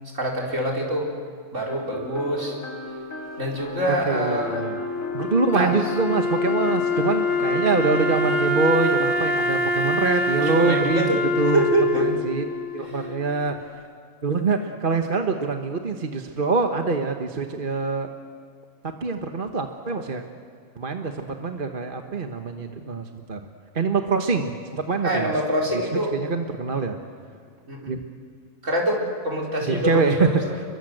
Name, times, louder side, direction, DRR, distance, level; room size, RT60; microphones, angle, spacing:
voice 1, 0.1-1.1 1.5-2.6 3.4-4.6 5.5-5.7 10.4-11.2 11.5-12.1 12.9-13.0 25.0-26.2 27.7-27.9 28.6-30.6, right 1 dB, 60° right, -2 dB, 4.9 m, -25 dB
sound 1, 1.7-9.3, left 2 dB, 70° left, 3.7 m, -36 dB
voice 2, 4.1-4.8 5.1-11.6 11.9-12.5 12.7-13.6 14.2-18.1 18.8-20.2 20.8-23.4 23.7-25.3 26.1-27.0 27.9-28.0 29.6-30.3, right 4 dB, 40° right, 4 dB, 1.3 m, -25 dB
Wind instrument woodwind instrument, 4.4-13.5, left 1 dB, 45° left, 1.5 m, -25 dB
30.0 x 22.5 x 7.9 m, 2.1 s
omnidirectional pair, 1.5 m